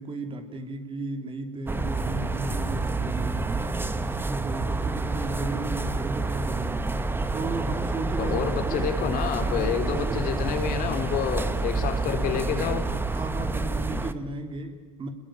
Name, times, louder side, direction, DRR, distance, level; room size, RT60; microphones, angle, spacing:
voice 1, 0.0-3.8 4.3-7.0 7.3-8.9 9.5-10.5 13.1-15.1, right 2 dB, 30° right, 6 dB, 3.5 m, -35 dB
sound 1, 1.7-14.1, right 3 dB, 10° right, 1.4 m, -28 dB
voice 2, 8.2-12.8, left 8 dB, 50° left, 5 dB, 3.9 m, -29 dB
28.0 x 21.0 x 9.2 m, 1.5 s
hypercardioid pair, 90°, 18 cm